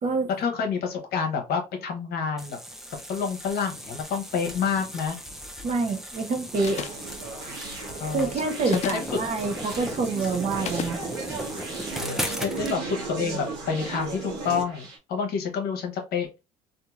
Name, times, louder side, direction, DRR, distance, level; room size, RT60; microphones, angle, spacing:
voice 1, 0.4-2.6 3.1-5.2 8.0-8.3 8.7-9.2 12.0-16.3, left 6 dB, 60° left, 0.9 m, -28 dB
sound 1, 2.4-12.8, equal, ahead, 0.6 m, -37 dB
voice 2, 5.6-6.8 7.4-7.6 8.0-11.0, right 3 dB, 45° right, 0.8 m, -27 dB
Conversation, 6.5-15.0, right 4 dB, 80° right, 1.0 m, -36 dB
sound 2, 6.6-7.1 8.6-9.1 10.6-11.0, left 9 dB, 40° left, 0.4 m, -33 dB
2.8 x 2.5 x 2.3 m
hypercardioid pair, 65°, 18 cm